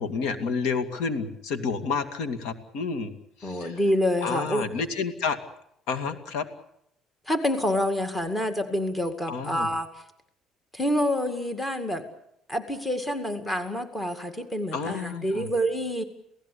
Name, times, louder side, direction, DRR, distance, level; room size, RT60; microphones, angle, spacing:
voice 1, 0.0-3.1 3.4-3.8 4.2-5.4 5.9-6.4 9.3-9.7 14.7-15.5, left 5 dB, 80° left, 9 dB, 2.5 m, -30 dB
voice 2, 3.4-4.7 7.3-9.9 10.7-12.1 12.5-16.0, equal, 10° left, 8 dB, 2.1 m, -27 dB
28.5 x 17.5 x 8.5 m, 0.76 s
cardioid pair, 170°, 0 cm